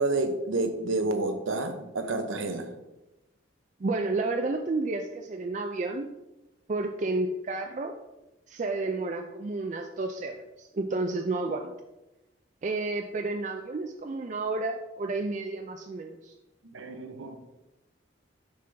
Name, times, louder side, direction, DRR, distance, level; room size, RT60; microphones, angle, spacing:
voice 1, 0.0-2.7 16.7-17.4, right 2 dB, 90° right, 7 dB, 0.8 m, -29 dB
voice 2, 3.8-6.1 6.7-7.9 8.5-11.7 12.6-16.3, right 3 dB, 40° right, 4 dB, 0.4 m, -31 dB
6.6 x 5.5 x 3.4 m, 0.99 s
head